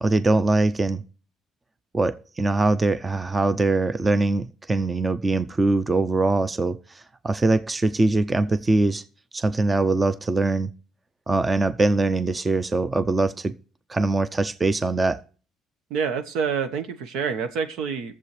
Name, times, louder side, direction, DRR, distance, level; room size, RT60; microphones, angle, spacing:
voice 1, 0.0-1.0 1.9-9.0 9.3-10.7 11.3-13.6 13.9-15.2, right 2 dB, 15° right, 0.5 m, -22 dB
voice 2, 15.9-18.2, right 6 dB, 90° right, 1.3 m, -27 dB
21.5 x 7.4 x 3.2 m
cardioid pair, 135°, 0 cm